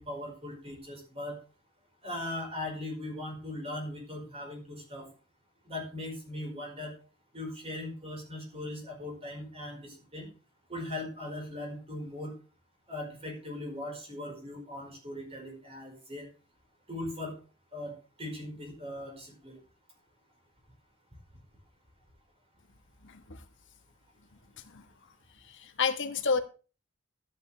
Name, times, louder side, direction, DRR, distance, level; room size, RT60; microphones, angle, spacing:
voice 1, 0.0-1.4 2.0-5.1 5.6-6.9 7.3-10.3 10.7-12.3 12.9-16.3 16.9-17.3 17.7-19.6, left 1 dB, 25° right, 1 dB, 4.9 m, -39 dB
voice 2, 23.0-23.4 24.7-24.8 25.6-26.4, left 5 dB, 55° left, 7 dB, 1.4 m, -30 dB
12.5 x 9.0 x 3.4 m, 0.35 s
head